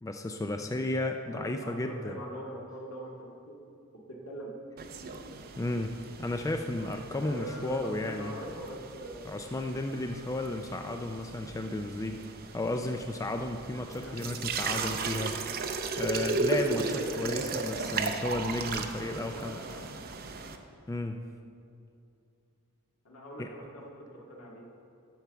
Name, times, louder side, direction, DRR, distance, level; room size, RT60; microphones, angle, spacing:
voice 1, 0.0-2.2 5.6-8.3 9.3-12.2 12.5-15.4 16.0-19.6 20.9-21.2 23.4-23.5, left 2 dB, 15° left, 5 dB, 0.3 m, -33 dB
voice 2, 1.3-3.6 4.1-4.5 7.1-9.2 13.9-15.2 19.0-19.8 23.0-24.6, right 1 dB, 75° left, -3 dB, 2.0 m, -43 dB
sound 1, 4.8-20.6, right 4 dB, 45° right, 0.6 m, -36 dB
11.5 x 4.7 x 6.9 m, 2.5 s
head